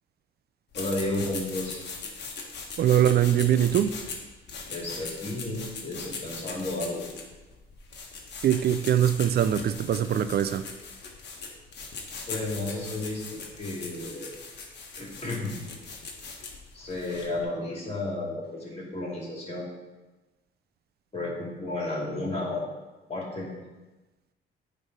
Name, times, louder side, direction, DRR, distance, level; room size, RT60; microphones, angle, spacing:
sound 1, 0.7-17.4, left 4 dB, 60° left, 1.3 m, -40 dB
voice 1, 0.7-1.8 4.7-7.1 12.3-14.3 15.0-15.6 16.7-19.7 21.1-22.6 23.1-23.5, left 2 dB, 30° left, 2.6 m, -32 dB
voice 2, 2.8-4.0 8.4-10.7, right 10 dB, 55° right, 0.4 m, -22 dB
9.0 x 3.2 x 5.3 m
cardioid pair, 90°, 20 cm